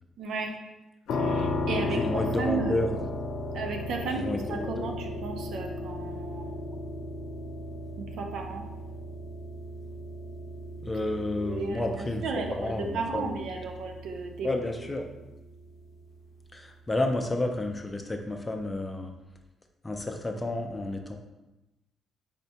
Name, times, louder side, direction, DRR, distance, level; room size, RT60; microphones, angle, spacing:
voice 1, 0.2-0.5 1.1-2.8 3.5-6.5 8.0-8.6 11.4-14.5, right 4 dB, 75° right, 3 dB, 0.4 m, -34 dB
sound 1, 1.1-15.9, left 2 dB, 75° left, 0.4 m, -35 dB
voice 2, 1.9-3.0 4.1-4.9 10.8-12.2 12.5-13.3 14.4-15.1 16.5-19.1 19.8-21.2, left 2 dB, 20° left, 3 dB, 0.4 m, -31 dB
4.2 x 2.2 x 2.7 m, 0.99 s
cardioid pair, 90°, 0 cm